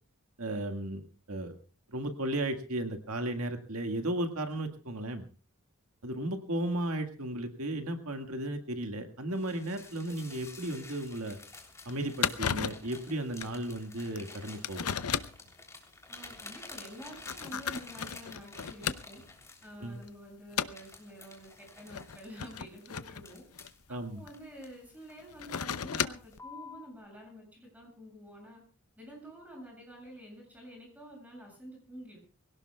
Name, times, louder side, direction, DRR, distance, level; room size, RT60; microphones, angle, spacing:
voice 1, 0.4-1.6 1.9-5.2 6.0-11.4 11.9-14.8 19.8-20.0 23.9-24.2, right 1 dB, 75° right, 6 dB, 1.9 m, -35 dB
sound 1, 9.3-20.1 20.6-23.8 24.3-25.3 25.6-25.9 26.3-26.9, left 3 dB, 15° left, 3.3 m, -50 dB
sound 2, 11.1-11.2 11.6-11.7 11.9-12.0 12.2-12.9 13.4-13.6 14.2-14.3 14.6-15.5 16.3-16.4 17.0-19.3 19.7-20.1 20.5-20.9 21.8-24.3 25.2-26.4, left 7 dB, 80° left, 0.7 m, -34 dB
voice 2, 16.1-19.2 19.6-23.4 23.9-28.6 29.0-32.2, equal, 5° right, 0 dB, 7.4 m, -49 dB
24.5 x 17.5 x 2.3 m, 0.36 s
head